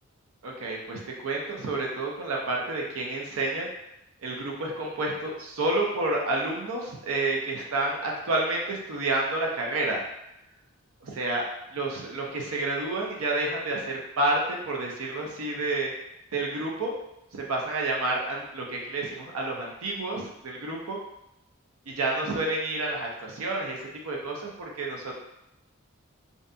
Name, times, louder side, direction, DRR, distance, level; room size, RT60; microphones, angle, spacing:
voice 1, 0.4-3.7 4.2-10.0 11.0-11.4 11.7-15.9 16.3-16.9 17.3-21.0 21.9-25.2, right 2 dB, 85° right, -1 dB, 0.5 m, -29 dB
2.6 x 2.6 x 2.2 m, 0.84 s
head